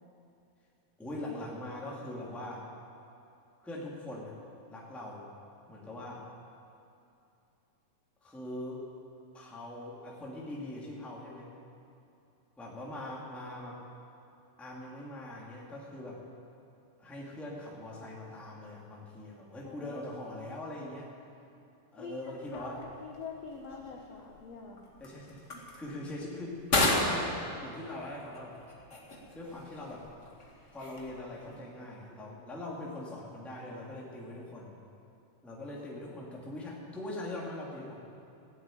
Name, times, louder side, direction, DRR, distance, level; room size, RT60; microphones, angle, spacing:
voice 1, 1.0-2.7 3.6-4.3 4.7-5.3 5.7-6.2 8.2-8.9 9.3-11.5 12.6-13.8 14.6-16.2 17.0-21.1 21.9-22.8 25.0-28.5 29.3-30.0 30.7-34.7 35.4-38.0, left 1 dB, ahead, -4 dB, 1.4 m, -42 dB
voice 2, 19.6-20.0 20.5-20.6 22.0-22.2 22.5-24.9, left 5 dB, 75° left, 0 dB, 1.5 m, -45 dB
sound 1, 22.4-31.6, left 2 dB, 35° left, 1.1 m, -36 dB
16.5 x 8.0 x 9.1 m, 2.7 s
omnidirectional pair, 4.4 m